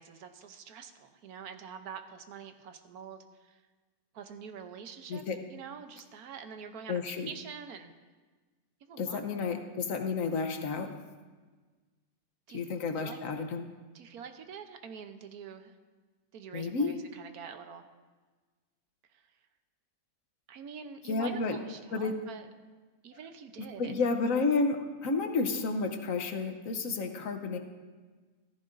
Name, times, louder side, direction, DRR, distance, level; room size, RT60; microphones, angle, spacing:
voice 1, 0.0-3.6 4.1-5.2 5.5-7.9 8.8-9.6 12.5-12.6 13.0-13.2 13.9-15.7 16.3-17.8 19.1-19.3 20.5-22.5 23.0-23.9, right 7 dB, 75° right, 7 dB, 1.3 m, -46 dB
voice 2, 6.9-7.3 9.0-10.9 12.5-13.7 16.5-16.9 21.1-21.6 21.9-22.1 23.6-27.6, left 4 dB, 65° left, 6 dB, 1.2 m, -31 dB
14.5 x 14.0 x 2.6 m, 1.4 s
omnidirectional pair, 1.6 m